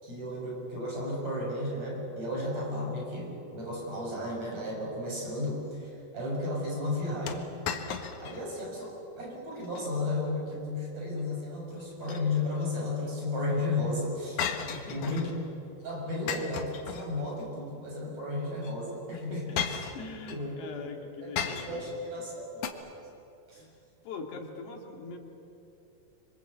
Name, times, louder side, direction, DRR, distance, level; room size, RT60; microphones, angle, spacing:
voice 1, 0.0-7.5 8.2-14.4 14.9-15.3 15.8-19.6 20.3-20.9 21.2-22.8 23.5-23.6, left 2 dB, 40° right, -2 dB, 7.9 m, -34 dB
sound 1, 7.3-8.4 8.8-8.9 9.5-9.9 11.8-12.7 14.4-15.4 16.3-17.4 18.6-18.7 19.6-20.4 21.4-22.0 22.6-22.7, left 7 dB, 60° left, 2.4 m, -35 dB
voice 2, 14.7-15.4 16.0-16.2 19.1-19.6 19.9-21.8 23.6-23.8 24.0-25.2, left 4 dB, 85° left, 2 dB, 4.7 m, -42 dB
26.0 x 25.5 x 8.3 m, 2.8 s
omnidirectional pair, 4.7 m